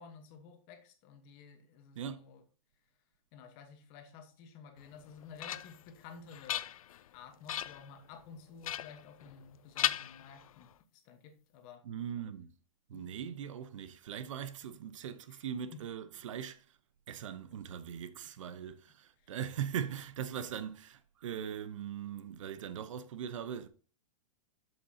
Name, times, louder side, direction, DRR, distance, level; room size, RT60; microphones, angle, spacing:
voice 1, 0.0-2.4 3.3-6.7 7.1-11.8 12.9-13.1 15.3-15.4 15.7-15.8 17.5-17.6 19.2-19.3, left 6 dB, 30° left, 1.2 m, -53 dB
voice 2, 2.0-2.3 11.8-12.5 12.9-16.8 17.1-23.7, right 8 dB, 65° right, 0.9 m, -40 dB
sound 1, 4.9-5.9 6.3-7.1 7.5-7.9 8.6-9.5 9.8-10.7, left 11 dB, 85° left, 0.5 m, -37 dB
8.1 x 7.2 x 2.8 m
supercardioid pair, 170°, 18 cm